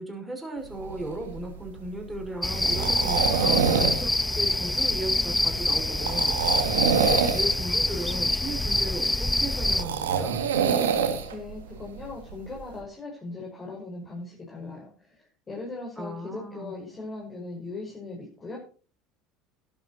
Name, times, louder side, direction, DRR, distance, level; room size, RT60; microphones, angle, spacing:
voice 1, 0.0-10.3 16.0-16.7, right 1 dB, 10° right, 3 dB, 5.5 m, -36 dB
sound 1, 0.6-12.8, right 7 dB, 90° right, 2.2 m, -27 dB
sound 2, 2.4-9.8, left 2 dB, 10° left, 0.6 m, -26 dB
voice 2, 11.3-18.6, left 3 dB, 30° left, -2 dB, 5.8 m, -39 dB
13.5 x 11.5 x 4.3 m, 0.39 s
hypercardioid pair, 80°, 0 cm